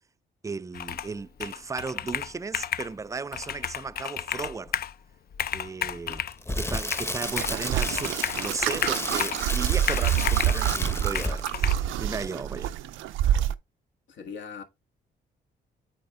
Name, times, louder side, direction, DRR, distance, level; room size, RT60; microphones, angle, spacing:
voice 1, 0.4-4.8 5.5-6.2 6.6-12.7, right 4 dB, 15° right, 0.4 m, -35 dB
Computer keyboard, 0.7-1.1 1.4-2.9 3.3-4.9 5.3-6.4 6.9-7.6 7.8-9.5 9.9-10.6 11.1-11.7, left 9 dB, 50° left, 0.5 m, -32 dB
voice 2, 5.9-6.2 14.1-14.6, left 6 dB, 65° left, 1.5 m, -41 dB
Crackle, 6.1-11.6 11.9-12.1, left 1 dB, 10° left, 0.9 m, -33 dB
sound 1, 7.2-13.5, right 11 dB, 85° right, 0.5 m, -27 dB
8.5 x 4.3 x 3.3 m
cardioid pair, 90°, 20 cm